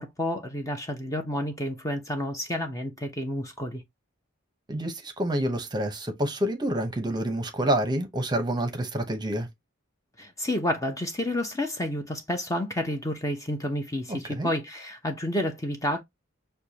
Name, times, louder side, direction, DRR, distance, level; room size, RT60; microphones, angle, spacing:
voice 1, 0.0-3.8 10.2-16.0, left 1 dB, 15° left, 0.7 m, -30 dB
voice 2, 4.7-9.5 14.1-14.5, right 1 dB, 20° right, 0.8 m, -28 dB
6.6 x 2.2 x 2.8 m
head